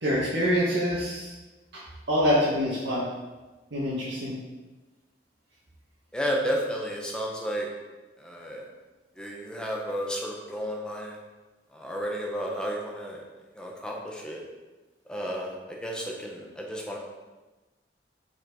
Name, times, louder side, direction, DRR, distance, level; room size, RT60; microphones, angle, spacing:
voice 1, 0.0-1.3 2.1-3.0 3.7-4.3, equal, 85° right, -9 dB, 1.6 m, -25 dB
voice 2, 6.1-7.7 8.2-8.6 9.2-11.2 11.7-13.2 13.6-14.4 15.1-17.0, equal, 5° left, -2 dB, 0.9 m, -32 dB
5.7 x 4.5 x 4.7 m, 1.2 s
head